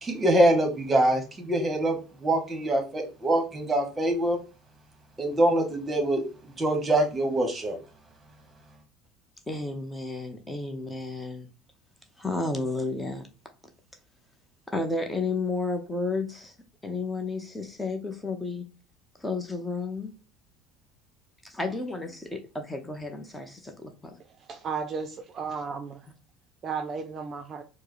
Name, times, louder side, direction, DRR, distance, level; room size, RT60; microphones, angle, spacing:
voice 1, 0.0-4.4 5.2-6.2 6.6-7.8, right 1 dB, 25° right, 1.1 m, -24 dB
voice 2, 9.5-11.5 12.2-13.3 14.7-16.5 16.8-18.6 19.2-20.1 21.4-24.1, left 3 dB, 10° left, 0.7 m, -32 dB
voice 3, 24.5-26.1 26.6-27.6, right 5 dB, 40° right, 0.4 m, -34 dB
4.5 x 2.0 x 3.0 m
hypercardioid pair, 85°, 0 cm